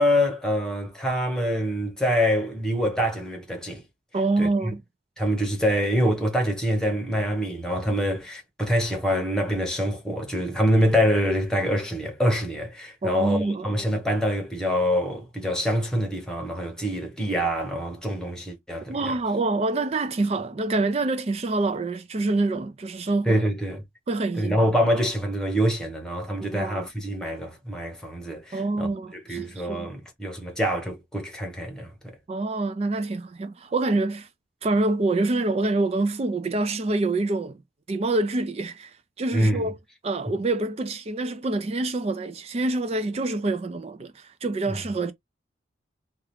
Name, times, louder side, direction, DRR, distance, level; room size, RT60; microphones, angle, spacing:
voice 1, 0.0-3.8 4.4-4.7 5.2-19.1 23.3-23.8 24.4-28.9 29.1-32.1 39.3-39.7, equal, 5° left, 0.8 m, -25 dB
voice 2, 4.1-4.8 13.0-13.8 18.9-23.4 24.1-24.6 26.4-26.9 28.5-29.9 32.3-34.3 34.6-37.6 37.9-39.8 40.0-45.1, right 2 dB, 30° right, 0.3 m, -26 dB
2.8 x 2.3 x 3.3 m
head